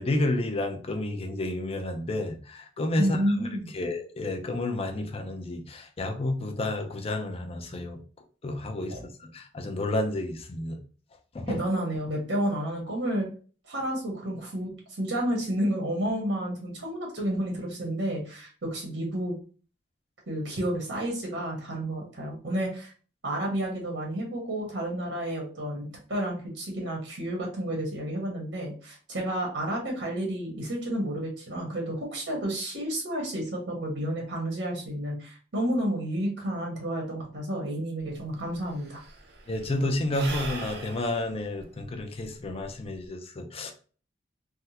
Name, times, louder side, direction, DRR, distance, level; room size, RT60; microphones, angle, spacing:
voice 1, 0.0-3.2 3.7-8.0 8.4-10.8 11.3-11.6 39.5-43.7, left 1 dB, 35° left, 4 dB, 0.5 m, -30 dB
voice 2, 3.0-3.7 8.9-9.0 11.5-13.3 13.7-19.4 20.3-22.9 23.2-39.0, right 1 dB, 85° right, -1 dB, 1.2 m, -31 dB
Sigh / Breathing, 38.0-38.1 38.3-43.1, right 3 dB, 65° right, 0.6 m, -40 dB
3.5 x 2.1 x 2.8 m, 0.39 s
head